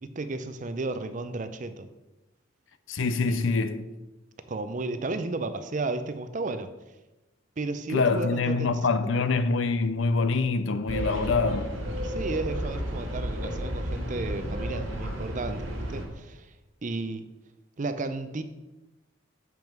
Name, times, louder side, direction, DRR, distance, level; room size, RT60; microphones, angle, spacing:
voice 1, 0.0-1.9 3.3-3.4 4.5-6.7 7.6-8.7 9.0-9.1 12.0-16.5 16.8-17.3 17.8-18.4, right 3 dB, 40° right, 0.5 m, -33 dB
voice 2, 2.9-3.9 7.9-11.7, left 4 dB, 70° left, 0.5 m, -25 dB
sound 1, 10.9-16.1, equal, 90° right, 1.8 m, -32 dB
7.5 x 5.4 x 4.5 m
head